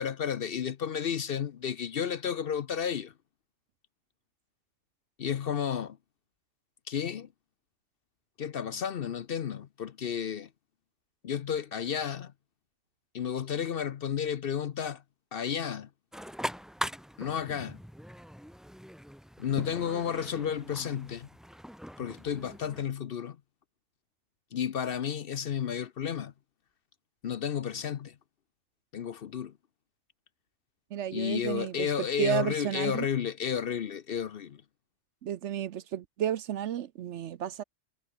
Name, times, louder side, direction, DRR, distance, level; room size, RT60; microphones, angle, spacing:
voice 1, 0.0-3.1 5.2-6.0 6.9-7.3 8.4-10.5 11.2-12.3 13.1-15.0 15.3-15.9 17.2-17.8 19.4-21.3 22.0-23.4 24.5-26.3 27.2-28.1 28.9-29.5 31.1-34.6, left 8 dB, 55° left, 0.8 m, -32 dB
sound 1, 16.1-22.8, equal, ahead, 1.5 m, -41 dB
voice 2, 30.9-31.9 32.2-33.1 35.2-37.6, right 10 dB, 65° right, 0.9 m, -32 dB
omnidirectional pair, 1.3 m